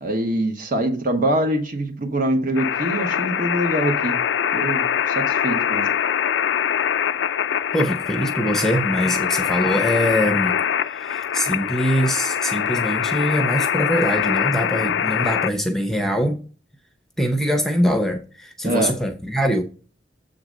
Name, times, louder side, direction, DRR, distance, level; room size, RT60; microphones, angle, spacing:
voice 1, 0.0-4.2 4.5-5.9 18.6-18.9, right 1 dB, 50° right, 1.1 m, -24 dB
sound 1, 2.6-15.5, left 8 dB, 85° left, 0.4 m, -23 dB
voice 2, 7.7-10.6 10.9-16.4 17.2-19.6, equal, ahead, 0.6 m, -23 dB
7.5 x 3.9 x 6.2 m
head